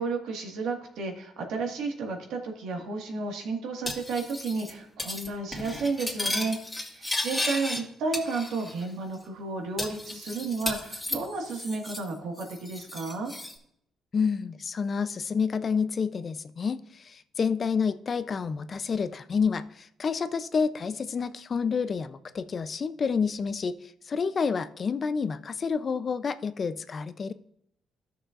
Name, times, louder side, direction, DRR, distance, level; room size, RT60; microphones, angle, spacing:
voice 1, 0.0-6.6 6.9-13.3, right 3 dB, 85° right, 2 dB, 1.7 m, -32 dB
Cutlery silverware, 3.9-4.7 5.0-5.3 5.5-7.8 8.1-8.8 9.1-9.2 9.8-12.1 12.4-13.5, left 1 dB, 10° left, 2.2 m, -34 dB
voice 2, 14.1-27.3, left 5 dB, 45° left, 12 dB, 0.5 m, -29 dB
13.5 x 6.6 x 2.5 m, 0.70 s
cardioid pair, 90°, 0 cm